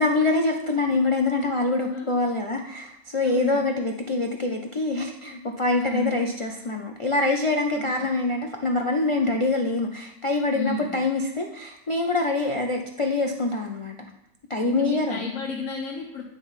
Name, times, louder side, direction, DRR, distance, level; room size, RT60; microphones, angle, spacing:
voice 1, 0.0-14.0 14.5-15.2, left 2 dB, 45° left, 2 dB, 0.4 m, -25 dB
voice 2, 3.2-3.6 5.6-6.2 7.7-8.1 10.5-11.0 14.6-16.2, left 4 dB, 80° left, -1 dB, 1.4 m, -32 dB
9.8 x 3.4 x 5.7 m, 0.81 s
omnidirectional pair, 1.4 m